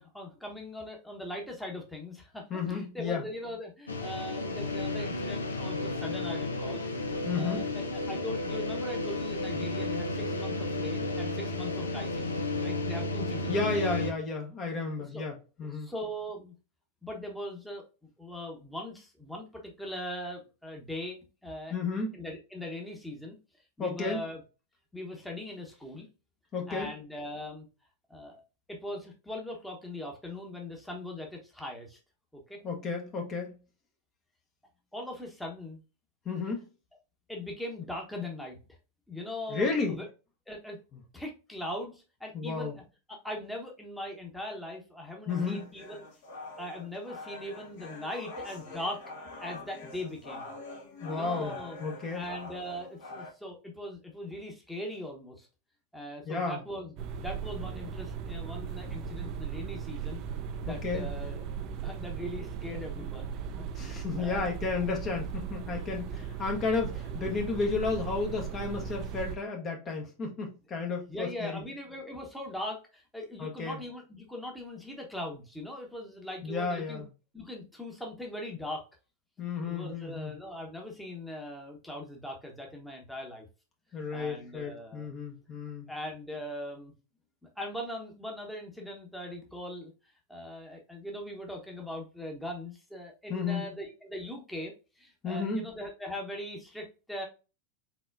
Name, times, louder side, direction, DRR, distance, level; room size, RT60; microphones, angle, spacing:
voice 1, 0.0-6.8 7.1-13.9 15.1-15.2 15.7-16.5 17.0-17.8 18.2-21.7 22.1-23.4 23.8-24.4 24.9-26.1 26.7-27.7 28.1-28.4 28.7-32.0 32.3-32.6 34.9-35.8 37.3-38.6 39.1-40.1 40.5-40.8 41.1-42.8 43.1-46.0 46.6-49.0 49.4-50.5 51.1-51.8 52.1-55.5 55.9-60.2 60.6-64.5 66.2-66.3 71.1-77.0 77.3-78.8 79.6-83.5 84.1-85.1 85.9-86.9 87.6-89.9 90.3-97.3, left 1 dB, 5° left, 0 dB, 1.1 m, -40 dB
voice 2, 2.5-3.2 7.2-7.7 13.5-15.9 21.7-22.1 23.8-24.2 26.5-26.9 32.6-33.6 36.2-36.7 39.5-40.0 42.3-42.7 45.3-45.7 51.0-52.3 56.2-56.6 60.7-61.1 63.7-71.6 73.4-73.8 76.4-77.1 79.4-80.3 83.9-85.9 93.3-93.7 95.2-95.7, left 4 dB, 25° left, 2 dB, 1.1 m, -32 dB
sound 1, 3.9-14.1, left 2 dB, 75° left, 0.8 m, -32 dB
sound 2, 45.3-53.3, left 2 dB, 55° left, 1.8 m, -44 dB
sound 3, 57.0-69.4, right 7 dB, 40° right, 0.5 m, -37 dB
4.3 x 4.1 x 2.5 m, 0.31 s
figure-of-eight pair, 90°, 0 cm